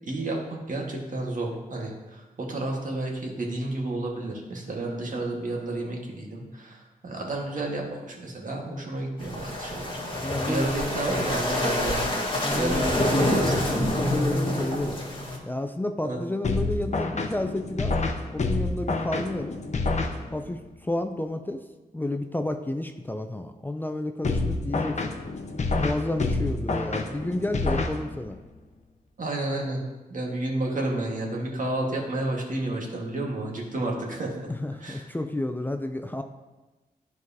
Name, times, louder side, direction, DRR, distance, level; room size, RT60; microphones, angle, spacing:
voice 1, 0.0-10.0 10.4-12.1 12.5-13.7 16.0-16.2 29.2-29.8 30.1-34.5 34.8-35.0, right 2 dB, 60° right, -1 dB, 1.6 m, -31 dB
sound 1, 9.2-15.4, left 1 dB, 35° left, 1.7 m, -26 dB
voice 2, 10.2-10.7 12.4-12.9 13.2-13.4 13.7-15.0 15.4-17.9 18.3-19.6 20.3-21.6 21.9-25.0 25.8-28.4 34.5-36.2, left 1 dB, 10° left, 6 dB, 0.5 m, -31 dB
sound 2, 16.4-20.6 24.2-28.5, left 3 dB, 50° left, 0.8 m, -28 dB
10.5 x 4.7 x 2.8 m, 1.1 s
cardioid pair, 55°, 16 cm